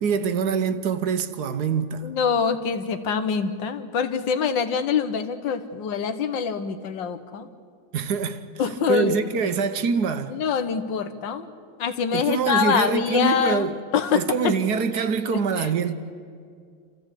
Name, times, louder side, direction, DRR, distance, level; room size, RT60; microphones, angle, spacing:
voice 1, 0.0-2.1 7.9-8.5 8.9-10.3 12.1-13.8 14.1-15.9, right 5 dB, 60° right, 1.3 m, -24 dB
voice 2, 2.0-7.5 8.6-9.1 9.4-9.6 10.3-11.5 11.8-13.7 13.9-14.5 14.9-15.1 15.3-15.7, left 6 dB, 70° left, 1.7 m, -25 dB
27.5 x 14.5 x 8.3 m
omnidirectional pair, 2.1 m